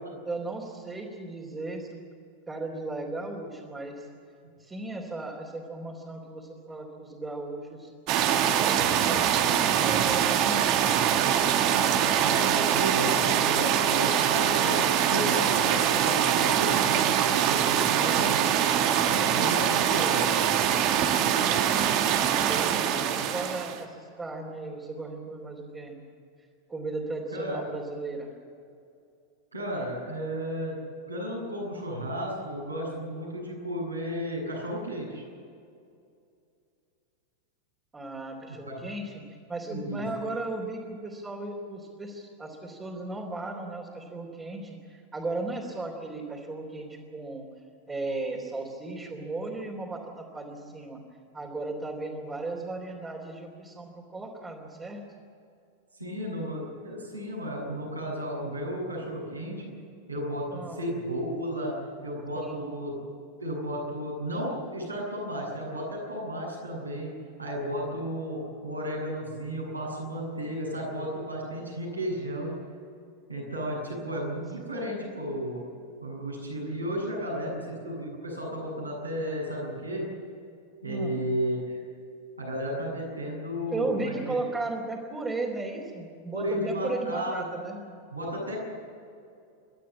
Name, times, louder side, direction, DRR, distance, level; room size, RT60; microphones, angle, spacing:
voice 1, 0.2-2.0 2.5-4.1 4.6-7.9 8.4-10.8 20.9-21.5 22.2-25.9 26.7-28.3 37.9-39.2 39.5-47.5 47.9-51.0 51.3-55.0 60.5-60.9 62.3-62.7 77.4-77.5 80.8-81.2 83.7-87.8, right 2 dB, 15° right, -4 dB, 3.3 m, -36 dB
sound 1, 8.1-23.8, right 9 dB, 40° right, 1.6 m, -24 dB
voice 2, 12.2-14.8 15.1-18.5 19.0-20.3 27.3-27.6 29.5-30.8 31.1-35.2 38.7-38.8 39.7-40.0 55.9-59.7 60.1-61.7 62.0-63.0 63.4-67.1 67.4-72.6 73.3-75.6 76.0-80.1 80.8-81.8 82.4-84.4 86.3-87.4 88.1-88.6, equal, 85° right, -3 dB, 7.5 m, -33 dB
28.5 x 13.0 x 8.7 m, 2.5 s
figure-of-eight pair, 90°, 0 cm